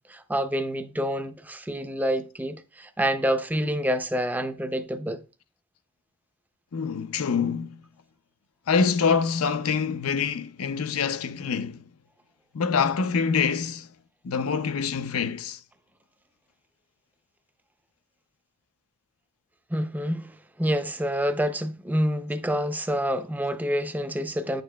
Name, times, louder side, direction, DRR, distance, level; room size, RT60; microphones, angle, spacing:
voice 1, 0.1-5.2 19.7-24.6, equal, 10° right, 0.5 m, -27 dB
voice 2, 6.7-7.7 8.7-11.8 12.5-13.9 14.2-15.6, left 5 dB, 90° left, 0.5 m, -25 dB
9.3 x 6.7 x 2.2 m
head